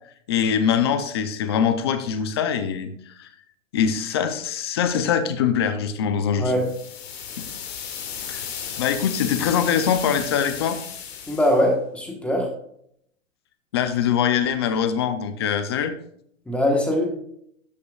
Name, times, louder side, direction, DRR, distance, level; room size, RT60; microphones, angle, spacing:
voice 1, 0.3-3.3 3.7-6.6 7.4-7.5 8.3-8.5 8.8-10.8 13.7-15.9, left 8 dB, 20° left, 10 dB, 0.5 m, -23 dB
voice 2, 6.4-6.7 11.3-12.5 16.5-17.2, equal, 5° left, 1 dB, 1.2 m, -22 dB
sound 1, 6.6-11.6, left 7 dB, 50° left, 2.3 m, -34 dB
13.0 x 8.4 x 2.4 m, 0.69 s
hypercardioid pair, 165°, 39 cm